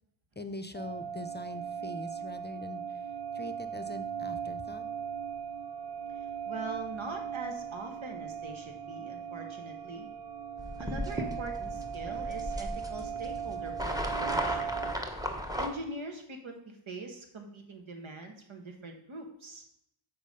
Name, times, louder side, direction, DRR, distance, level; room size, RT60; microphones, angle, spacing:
voice 1, 0.4-3.1 3.3-4.9, left 2 dB, 20° left, 9 dB, 0.6 m, -43 dB
sound 1, 0.7-14.9, right 7 dB, 60° right, 0.9 m, -38 dB
voice 2, 6.4-10.1 10.8-14.8 15.6-19.6, right 2 dB, 75° right, 4 dB, 1.5 m, -42 dB
sound 2, 10.6-15.7, equal, 5° right, 1.1 m, -36 dB
7.4 x 4.6 x 5.2 m, 0.75 s
cardioid pair, 55°, 48 cm